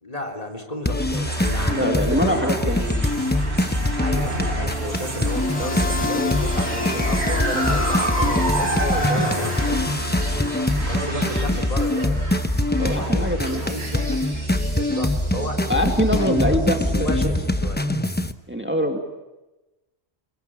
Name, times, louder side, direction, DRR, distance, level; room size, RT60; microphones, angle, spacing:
voice 1, 0.0-2.7 4.0-9.9 10.7-12.1 12.8-14.2 14.8-17.8, equal, 35° left, 4 dB, 3.6 m, -32 dB
sound 1, 0.9-18.3, left 1 dB, 10° left, 0.8 m, -23 dB
sound 2, 1.0-17.5, right 2 dB, 75° right, 5.2 m, -31 dB
voice 2, 1.7-3.0 12.8-13.6 15.7-17.1 18.5-19.0, equal, 10° right, 3 dB, 2.2 m, -23 dB
sound 3, 5.2-11.0, left 4 dB, 80° left, 1.8 m, -31 dB
27.0 x 21.5 x 8.9 m, 1.0 s
omnidirectional pair, 1.2 m